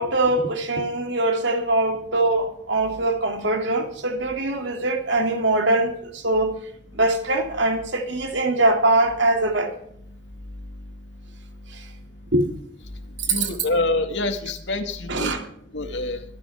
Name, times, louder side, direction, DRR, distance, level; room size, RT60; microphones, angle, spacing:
voice 1, 0.0-6.5 6.9-9.7 11.7-11.8 12.3-12.5 13.2-13.5 15.1-15.4, right 2 dB, 85° right, 2.8 m, -22 dB
voice 2, 13.3-15.4 15.7-16.2, left 2 dB, 90° left, 2.1 m, -26 dB
24.0 x 10.0 x 3.6 m
head